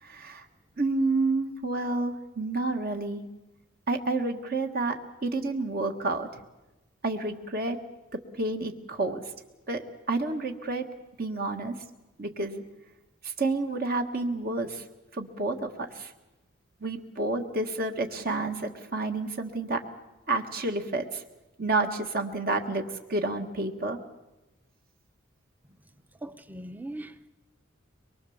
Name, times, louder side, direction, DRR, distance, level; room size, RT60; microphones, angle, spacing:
voice 1, 0.0-0.4 0.8-3.2 3.9-6.4 7.0-7.8 8.1-9.2 9.7-10.9 11.2-11.7 12.2-12.6 13.2-14.8 15.1-16.1 16.8-19.8 20.3-21.2 21.6-24.0, right 2 dB, 50° right, 1.5 m, -30 dB
voice 2, 26.2-27.3, right 1 dB, 10° right, 0.8 m, -40 dB
23.5 x 22.5 x 7.1 m
head